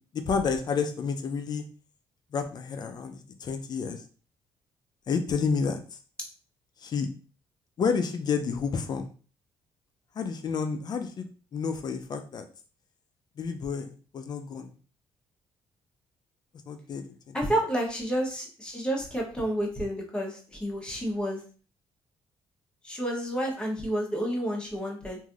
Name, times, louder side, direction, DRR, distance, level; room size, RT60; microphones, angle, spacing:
voice 1, 0.1-1.6 2.3-4.0 5.1-6.0 6.8-7.1 7.8-9.1 10.1-11.3 11.5-12.5 13.4-14.7 16.7-17.6, left 5 dB, 45° left, 7 dB, 0.5 m, -30 dB
voice 2, 17.3-21.4 22.8-25.2, right 1 dB, 10° left, -2 dB, 1.0 m, -30 dB
3.2 x 2.7 x 2.4 m, 0.37 s
cardioid pair, 110°, 10 cm